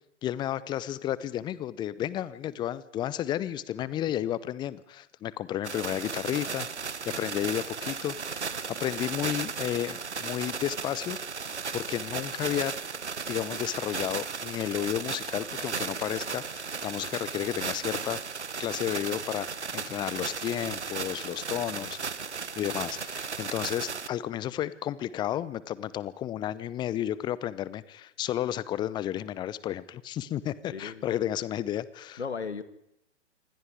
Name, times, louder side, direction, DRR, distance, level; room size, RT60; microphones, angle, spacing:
voice 1, 0.2-6.7 7.0-12.7 13.3-18.2 18.6-22.0 22.6-32.2, left 12 dB, 15° left, 19 dB, 0.8 m, -32 dB
sound 1, 5.6-24.1, right 5 dB, 75° right, 1.4 m, -35 dB
voice 2, 21.5-21.9 30.7-31.0 32.2-32.6, left 5 dB, 70° left, 13 dB, 2.4 m, -37 dB
27.0 x 24.0 x 4.8 m, 0.77 s
figure-of-eight pair, 120°, 35 cm